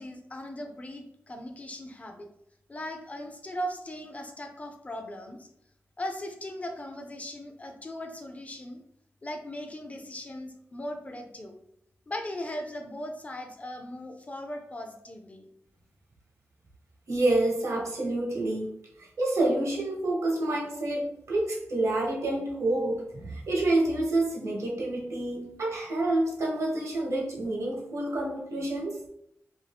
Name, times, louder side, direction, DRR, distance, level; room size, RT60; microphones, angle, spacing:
voice 1, 0.0-2.3 2.7-5.5 6.0-8.8 9.2-11.6 12.1-15.5, left 1 dB, 25° left, 4 dB, 0.3 m, -38 dB
voice 2, 17.1-18.7 19.0-29.0, right 2 dB, 70° right, -2 dB, 0.9 m, -28 dB
2.6 x 2.4 x 3.3 m, 0.76 s
wide cardioid pair, 140°, 5 cm